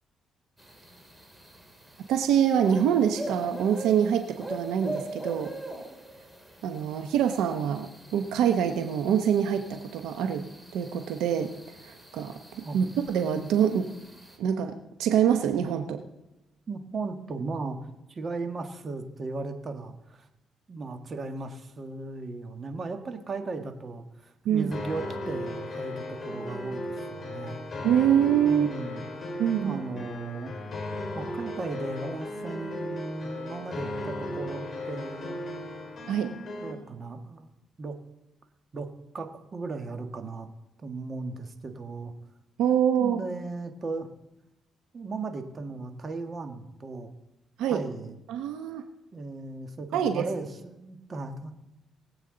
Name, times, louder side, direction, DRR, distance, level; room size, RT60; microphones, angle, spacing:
sound 1, 0.6-14.4, right 1 dB, 5° right, 2.4 m, -43 dB
voice 1, 2.1-5.5 6.6-10.5 10.7-11.5 11.8-13.9 14.4-16.0 24.4-24.7 27.8-28.7 29.4-29.8 36.1-36.4 42.6-43.2 47.6-47.8 48.3-48.8 49.9-50.2, right 9 dB, 90° right, 7 dB, 0.8 m, -25 dB
voice 2, 16.7-17.8 18.1-20.3 20.7-27.6 28.4-29.1 29.6-30.5 31.1-35.4 36.6-37.5 37.8-38.0 38.7-38.9 39.1-40.5 40.8-42.1 42.9-44.1 44.9-47.1 47.7-48.2 49.1-51.5, right 3 dB, 40° right, 6 dB, 1.5 m, -36 dB
sound 2, 24.7-36.7, left 1 dB, 35° left, 3.9 m, -36 dB
20.5 x 8.1 x 3.9 m, 0.93 s
cardioid pair, 90°, 0 cm